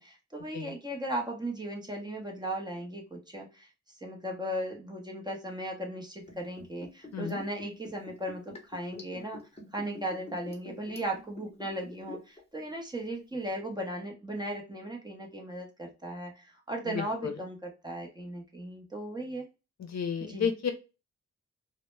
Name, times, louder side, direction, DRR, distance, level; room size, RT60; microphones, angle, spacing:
voice 1, 0.0-3.7 4.0-9.4 9.7-19.5 20.2-20.5, right 1 dB, 15° right, 1 dB, 0.7 m, -37 dB
Liquid, 6.2-12.4 12.7-12.8, left 2 dB, 20° left, 0.9 m, -46 dB
voice 2, 16.9-17.4 19.8-20.7, left 7 dB, 65° left, 5 dB, 0.6 m, -32 dB
2.0 x 2.0 x 3.1 m, 0.29 s
wide cardioid pair, 95°, 29 cm